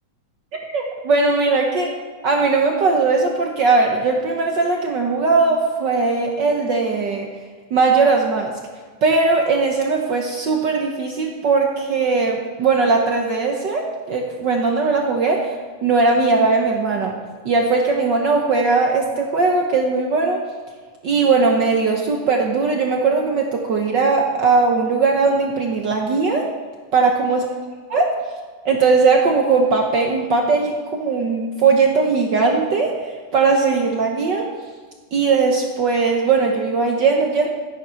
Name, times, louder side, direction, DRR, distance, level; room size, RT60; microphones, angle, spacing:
voice 1, 0.6-1.9 2.2-7.3 7.7-8.5 9.0-15.5 15.8-17.2 17.4-20.4 21.0-26.5 26.9-27.4 27.9-28.1 28.6-34.5 35.1-37.5, right 4 dB, 70° right, 1 dB, 1.0 m, -19 dB
12.0 x 9.4 x 5.7 m, 1.5 s
omnidirectional pair, 3.3 m